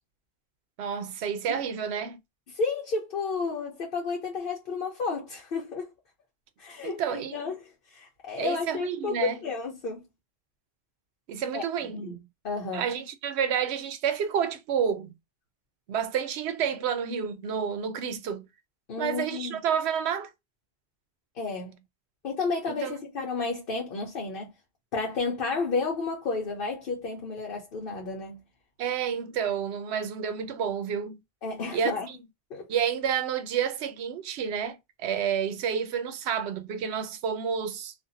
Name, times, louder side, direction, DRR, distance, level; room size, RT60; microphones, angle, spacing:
voice 1, 0.8-2.2 6.8-7.4 8.4-9.4 11.3-12.0 12.7-15.1 15.9-18.5 19.0-20.3 22.7-22.9 28.8-31.2 31.7-31.9 32.7-37.9, right 8 dB, 85° right, 0.8 m, -29 dB
voice 2, 2.5-5.9 6.6-10.0 11.5-12.2 12.4-12.8 18.9-19.6 21.3-21.8 22.2-24.5 24.9-28.4 31.4-32.1 32.5-32.7, left 4 dB, 60° left, 0.9 m, -32 dB
2.5 x 2.4 x 2.6 m
omnidirectional pair, 1.1 m